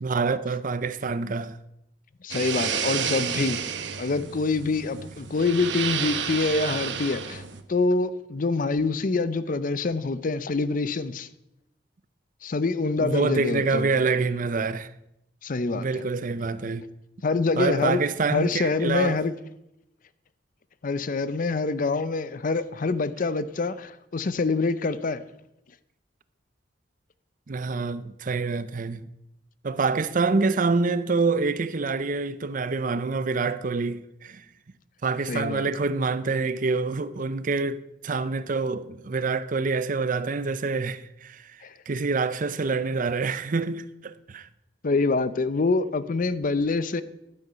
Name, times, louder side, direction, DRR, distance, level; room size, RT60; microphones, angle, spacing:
voice 1, 0.0-1.6 13.0-14.9 15.7-16.8 17.6-19.2 27.5-29.1 29.6-34.5 35.0-44.5, right 4 dB, 45° right, 0.6 m, -26 dB
voice 2, 2.2-3.6 4.0-7.4 7.7-11.3 12.4-13.9 15.4-16.0 17.2-18.0 18.3-19.3 20.8-25.2 35.3-35.7 41.6-41.7 44.8-47.0, left 3 dB, 50° left, 0.6 m, -25 dB
sound 1, 2.3-7.6, right 7 dB, 75° right, 1.0 m, -31 dB
11.0 x 9.1 x 5.6 m
head